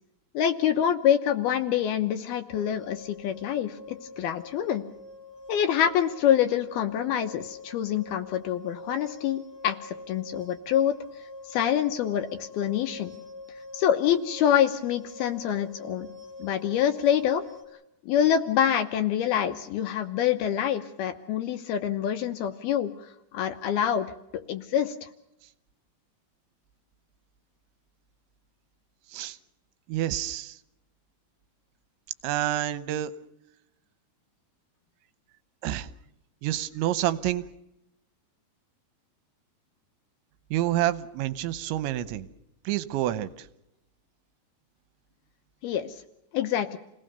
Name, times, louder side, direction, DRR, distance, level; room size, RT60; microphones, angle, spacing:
voice 1, 0.3-4.8 5.5-11.0 11.5-13.1 13.7-16.1 16.4-17.4 18.1-24.1 24.3-25.1 45.6-46.0 46.3-46.8, left 9 dB, 70° left, 9 dB, 2.5 m, -26 dB
sound 1, 2.5-17.6, left 3 dB, 5° left, 4.9 m, -45 dB
voice 2, 29.9-30.6 32.2-33.1 35.6-35.9 36.4-37.4 40.5-42.3 42.7-43.3, right 13 dB, 80° right, 14 dB, 3.3 m, -28 dB
28.5 x 18.5 x 6.8 m, 0.85 s
omnidirectional pair, 5.3 m